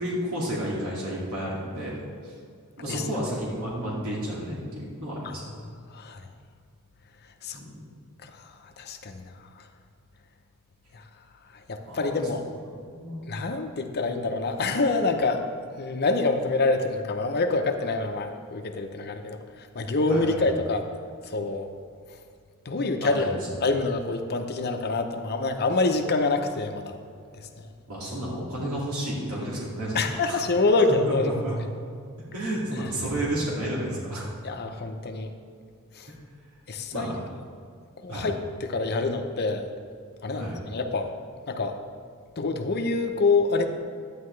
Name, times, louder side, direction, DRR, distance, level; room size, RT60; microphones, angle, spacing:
voice 1, 0.0-2.3 2.8-5.4 7.5-7.9 11.8-12.4 12.7-13.2 20.1-20.4 23.0-23.5 27.9-30.4 30.9-31.6 32.2-34.3 36.9-37.2 38.1-38.3 40.3-40.6, right 1 dB, 80° right, -6 dB, 2.4 m, -31 dB
voice 2, 8.8-9.2 11.7-12.4 13.3-15.4 15.8-19.4 19.7-20.9 21.3-21.7 22.7-27.0 29.9-31.3 34.4-35.3 36.0-36.1 36.7-37.1 38.0-39.7 40.2-41.1 41.5-41.8 42.4-43.7, left 3 dB, 50° left, 5 dB, 0.8 m, -26 dB
11.5 x 9.6 x 3.3 m, 2.3 s
head